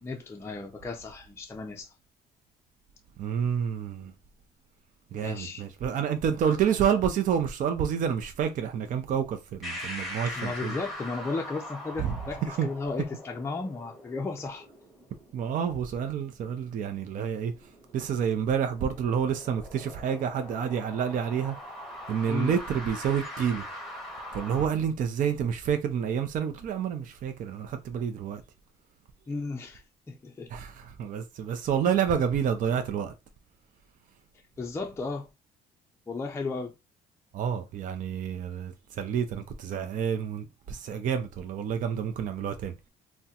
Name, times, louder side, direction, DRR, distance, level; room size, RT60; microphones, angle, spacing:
voice 1, 0.0-1.9 5.1-5.6 10.3-14.6 22.3-22.6 29.3-30.5 34.6-35.3 36.1-36.7, left 3 dB, 15° left, 0.5 m, -35 dB
voice 2, 3.2-4.1 5.1-10.7 12.0-12.2 12.4-12.7 15.3-17.5 17.9-21.5 22.1-23.6 24.3-28.4 30.5-33.1 37.3-42.7, right 8 dB, 50° right, 0.5 m, -29 dB
sound 1, 9.6-24.6, left 1 dB, ahead, 1.3 m, -42 dB
3.4 x 2.1 x 2.8 m
cardioid pair, 110°, 17 cm